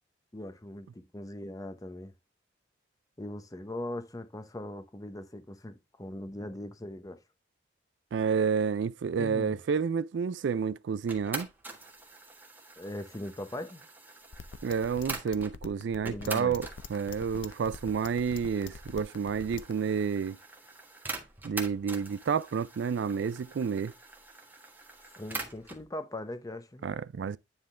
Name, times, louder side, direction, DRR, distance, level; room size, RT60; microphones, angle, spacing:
voice 1, 0.3-2.1 3.2-7.2 9.2-9.5 12.8-13.8 16.0-16.6 25.2-26.9, left 1 dB, 20° left, 0.7 m, -40 dB
voice 2, 8.1-11.5 14.6-20.4 21.4-23.9 26.8-27.4, right 6 dB, 70° right, 0.4 m, -30 dB
sound 1, 11.1-15.6 16.1-25.8, right 3 dB, 10° right, 1.4 m, -44 dB
sound 2, 14.3-19.7, left 5 dB, 75° left, 0.6 m, -44 dB
9.8 x 3.7 x 3.2 m
head